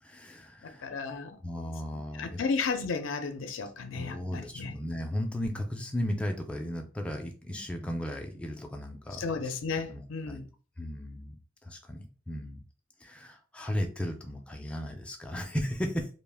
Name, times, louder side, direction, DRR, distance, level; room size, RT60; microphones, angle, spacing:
voice 1, 0.0-0.9 1.4-2.4 3.9-10.4 10.8-11.4 11.6-12.6 13.0-16.1, equal, 5° left, 0.3 m, -35 dB
voice 2, 0.6-1.4 2.1-4.7 9.2-10.4, left 4 dB, 70° left, 0.4 m, -33 dB
2.4 x 2.1 x 3.3 m
head